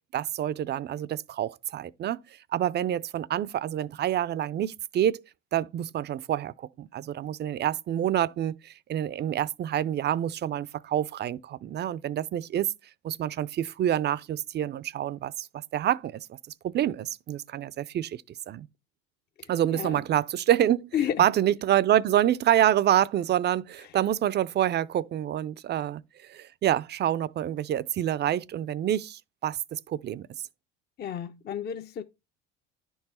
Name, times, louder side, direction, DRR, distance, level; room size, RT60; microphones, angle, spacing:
voice 1, 0.1-2.2 2.5-5.2 5.5-12.7 13.0-15.5 15.7-16.3 16.6-18.7 19.5-20.9 21.2-26.0 26.3-30.3, right 11 dB, 35° right, 0.4 m, -27 dB
voice 2, 19.4-20.0 20.9-21.3 23.8-24.0 31.0-32.0, left 9 dB, 35° left, 0.5 m, -32 dB
10.5 x 4.6 x 4.2 m
supercardioid pair, 80°, 31 cm